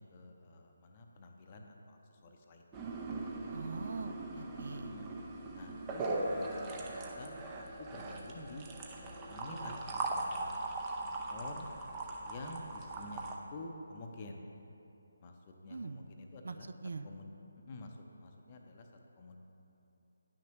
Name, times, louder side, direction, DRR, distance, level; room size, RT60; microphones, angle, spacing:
voice 1, 0.0-2.8 4.9-5.1 5.5-8.7 8.9-11.7 12.2-14.5 15.2-15.3 15.6-16.7 17.0-17.3 17.6-18.9 19.2-19.4, left 2 dB, 30° left, 2 dB, 0.6 m, -49 dB
sound 1, 2.7-13.3, right 2 dB, 20° right, 0.6 m, -40 dB
voice 2, 3.5-4.9 15.7-16.0 16.4-16.6 16.8-17.1, right 4 dB, 60° right, 10 dB, 0.3 m, -42 dB
9.8 x 6.1 x 3.0 m, 3.0 s
figure-of-eight pair, 150°, 0 cm